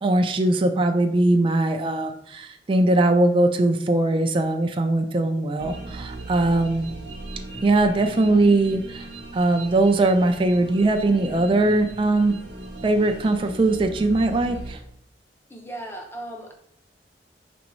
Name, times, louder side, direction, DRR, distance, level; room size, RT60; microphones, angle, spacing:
voice 1, 0.0-6.9 7.6-9.1 9.3-12.4 12.8-14.8, right 2 dB, 30° right, 5 dB, 0.4 m, -20 dB
sound 1, 5.6-14.8, right 2 dB, 70° right, 0.7 m, -38 dB
voice 2, 15.5-16.5, right 1 dB, 15° left, 2 dB, 0.6 m, -36 dB
5.1 x 3.4 x 3.1 m, 0.73 s
head